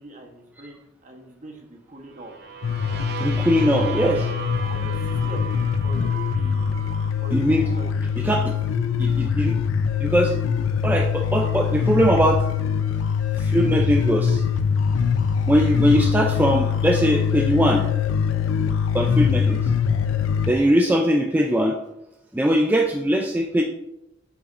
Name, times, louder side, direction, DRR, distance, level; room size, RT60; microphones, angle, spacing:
voice 1, 0.0-2.3 3.9-5.5 5.8-6.9 7.2-7.4 7.7-8.5 13.0-13.6 14.9-15.5, right 2 dB, 40° right, 3 dB, 1.1 m, -42 dB
sound 1, 2.1-8.0, right 7 dB, 55° right, 0.7 m, -36 dB
sound 2, 2.6-20.5, left 6 dB, 85° left, 0.5 m, -23 dB
voice 2, 3.2-4.2 7.3-7.7 8.2-8.5 9.0-9.6 10.0-10.3 10.8-12.4 13.4-14.4 15.5-17.9 18.9-19.7 20.5-21.8 22.3-23.6, equal, 10° right, 1 dB, 0.4 m, -21 dB
8.8 x 7.0 x 2.6 m, 0.86 s
head